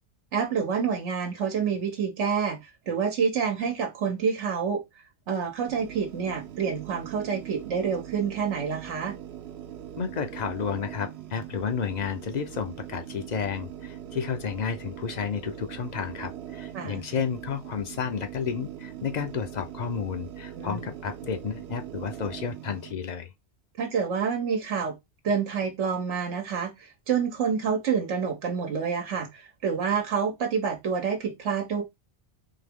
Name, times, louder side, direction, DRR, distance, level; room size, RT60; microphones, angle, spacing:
voice 1, 0.3-4.8 5.3-9.2 16.7-17.0 20.6-20.9 23.8-25.0 25.2-31.8, right 6 dB, 90° right, 1.1 m, -28 dB
sound 1, 5.7-22.9, right 11 dB, 65° right, 0.9 m, -41 dB
voice 2, 10.0-23.3, left 6 dB, 45° left, 0.6 m, -31 dB
3.8 x 2.9 x 3.5 m
omnidirectional pair, 1.2 m